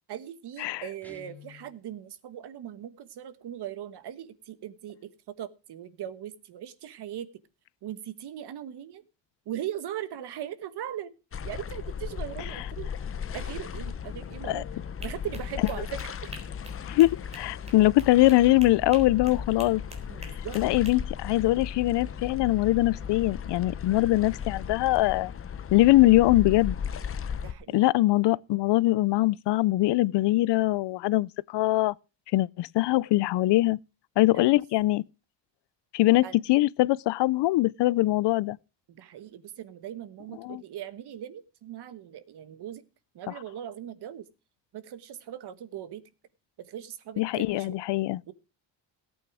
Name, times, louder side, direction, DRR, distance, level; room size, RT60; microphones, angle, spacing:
voice 1, 0.1-5.1 5.4-7.3 7.8-9.0 9.5-11.1 11.4-12.9 13.3-14.7 15.0-16.0 20.1-20.6 27.4-27.8 34.3-34.5 36.2-36.4 38.9-42.8 43.1-44.3 44.7-46.0 46.6-47.8 48.3-48.4, right 10 dB, 65° right, 1.4 m, -39 dB
Guitar, 1.0-1.8, left 6 dB, 5° left, 2.3 m, -50 dB
sound 1, 11.3-27.5, left 7 dB, 30° left, 0.7 m, -36 dB
sound 2, 15.0-20.9, right 2 dB, 15° right, 3.8 m, -47 dB
voice 2, 16.9-19.8 20.5-25.3 25.7-26.8 27.7-31.9 32.3-33.8 34.2-35.0 35.9-38.6 40.4-40.6 43.3-43.4 47.2-48.2, left 17 dB, 70° left, 0.6 m, -22 dB
17.5 x 8.7 x 4.8 m
cardioid pair, 150°, 43 cm